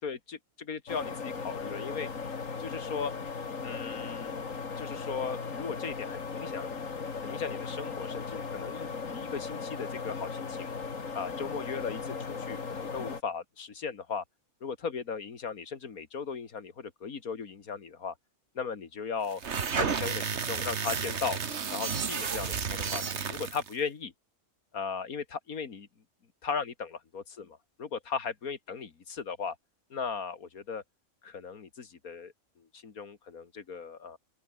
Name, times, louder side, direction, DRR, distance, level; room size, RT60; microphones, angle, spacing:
voice 1, 0.0-2.1 2.6-3.1 3.6-4.3 4.8-6.8 7.2-10.7 11.1-14.2 14.6-18.1 18.5-19.4 19.7-21.4 21.7-24.1 24.7-25.9 26.4-29.6 29.9-30.8 31.2-34.2, left 5 dB, 80° left, 2.4 m, -37 dB
sound 1, 0.9-13.2, left 5 dB, 65° left, 2.5 m, -37 dB
sound 2, 19.3-23.7, right 6 dB, 50° right, 1.7 m, -32 dB
open air
omnidirectional pair, 1.5 m